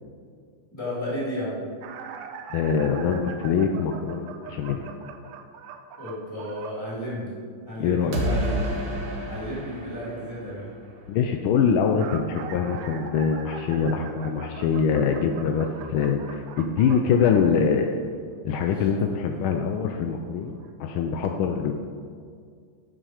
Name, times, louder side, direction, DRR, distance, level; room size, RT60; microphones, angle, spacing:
voice 1, 0.7-1.7 6.0-7.4 7.7-8.6 9.2-10.7 13.9-14.4 18.7-18.9 19.3-19.5, equal, 10° left, -8 dB, 2.8 m, -33 dB
sound 1, 1.8-6.8 11.7-17.8 18.9-19.1 20.1-20.2 20.6-20.7, right 6 dB, 90° right, 1.6 m, -42 dB
voice 2, 2.5-4.8 7.8-8.2 11.1-17.9 18.4-21.7, left 6 dB, 75° left, 4 dB, 1.4 m, -24 dB
sound 2, 8.1-11.0, equal, 65° right, 2.1 m, -30 dB
11.0 x 6.3 x 4.9 m, 2.1 s
omnidirectional pair, 2.4 m